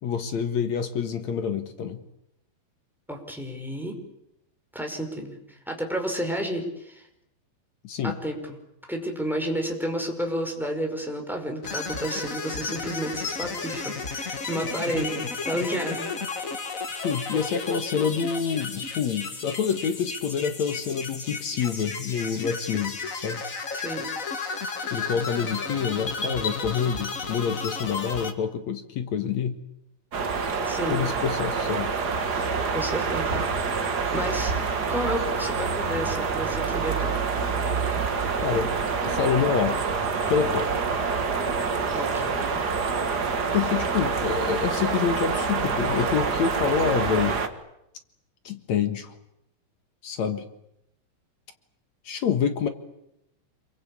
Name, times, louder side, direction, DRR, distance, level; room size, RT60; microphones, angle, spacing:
voice 1, 0.0-2.0 7.8-8.2 15.0-15.1 17.0-23.4 24.9-29.6 30.9-31.9 38.4-38.7 39.0-39.9 40.3-40.9 43.5-47.4 48.5-49.1 50.0-50.4 52.1-52.7, left 7 dB, 60° left, 8 dB, 2.4 m, -27 dB
voice 2, 3.1-3.9 4.7-7.1 8.0-8.6 8.9-16.1 23.7-24.1 30.6-31.0 32.7-33.8 34.1-34.5 34.9-37.2 41.9-42.7, equal, ahead, 2 dB, 5.0 m, -31 dB
sound 1, 11.6-28.3, left 4 dB, 35° left, 1.5 m, -33 dB
sound 2, 30.1-47.5, right 5 dB, 40° right, 1.5 m, -26 dB
27.5 x 23.5 x 8.7 m, 0.81 s
omnidirectional pair, 4.1 m